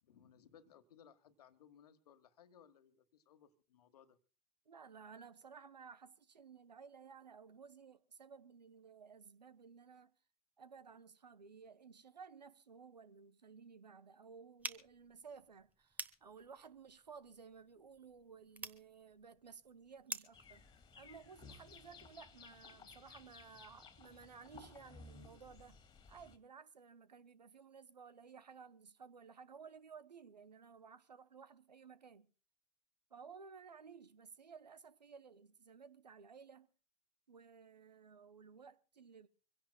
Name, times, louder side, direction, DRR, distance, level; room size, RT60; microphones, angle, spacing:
voice 1, 0.0-4.2 21.9-22.0, left 8 dB, 65° left, 1.6 m, -64 dB
voice 2, 4.7-10.1 10.6-20.7 21.0-25.8 26.1-32.3 33.1-36.7 37.3-39.3, right 6 dB, 80° right, 1.0 m, -56 dB
sound 1, 14.6-20.5, right 2 dB, 5° right, 1.2 m, -50 dB
sound 2, 20.3-26.4, left 5 dB, 20° left, 2.3 m, -58 dB
25.0 x 16.5 x 2.3 m
figure-of-eight pair, 85°, 21 cm